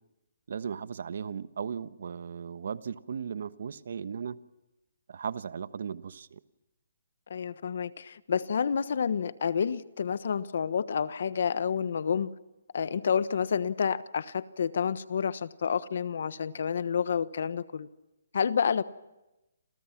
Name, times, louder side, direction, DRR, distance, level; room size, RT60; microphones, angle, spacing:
voice 1, 0.5-4.4 5.1-6.4, right 7 dB, 60° right, 13 dB, 1.2 m, -36 dB
voice 2, 7.3-12.3 12.7-17.9 18.3-18.8, left 7 dB, 55° left, 15 dB, 1.2 m, -29 dB
29.5 x 27.5 x 6.0 m, 0.97 s
hypercardioid pair, 165°, 0 cm